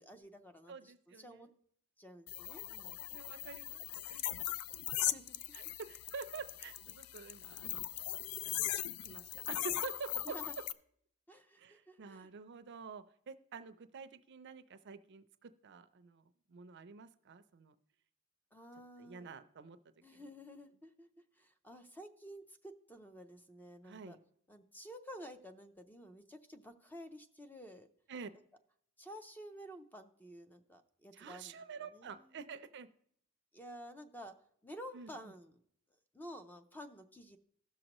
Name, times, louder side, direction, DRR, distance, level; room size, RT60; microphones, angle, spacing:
voice 1, 0.0-1.5 2.0-3.0 5.0-5.4 10.3-10.5 11.3-12.3 18.5-19.3 20.0-21.1 21.4-24.2 24.5-27.9 29.0-31.6 31.9-32.4 33.5-34.3 34.6-35.6 36.1-37.4, equal, 10° left, 7 dB, 0.5 m, -51 dB
voice 2, 0.7-1.5 3.1-4.3 5.5-7.9 8.4-8.6 9.0-10.4 11.6-16.2 16.5-17.7 19.0-19.8 20.1-20.2 23.8-24.2 28.1-28.3 31.1-32.9 34.9-35.1, right 5 dB, 55° right, 12 dB, 0.5 m, -48 dB
sound 1, 2.3-10.7, left 12 dB, 85° left, 0.4 m, -39 dB
16.0 x 6.3 x 3.0 m, 0.67 s
head